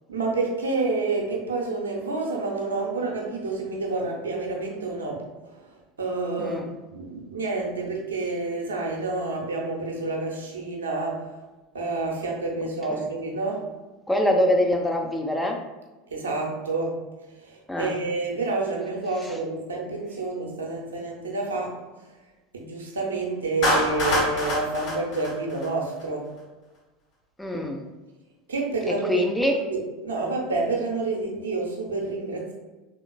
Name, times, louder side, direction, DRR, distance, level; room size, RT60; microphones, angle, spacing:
voice 1, 0.1-5.7 6.0-11.3 11.7-13.6 16.1-17.0 17.4-21.8 22.5-26.3 28.5-29.2 29.6-32.5, right 3 dB, 70° right, 0 dB, 0.8 m, -29 dB
voice 2, 6.4-6.7 12.9-13.1 14.1-15.6 17.7-18.0 19.2-19.4 27.4-27.8 29.0-29.6, left 1 dB, 5° left, 2 dB, 0.6 m, -24 dB
Clapping, 23.6-26.0, left 1 dB, 50° left, 1.4 m, -25 dB
5.0 x 3.7 x 2.2 m, 1.2 s
figure-of-eight pair, 75°, 0 cm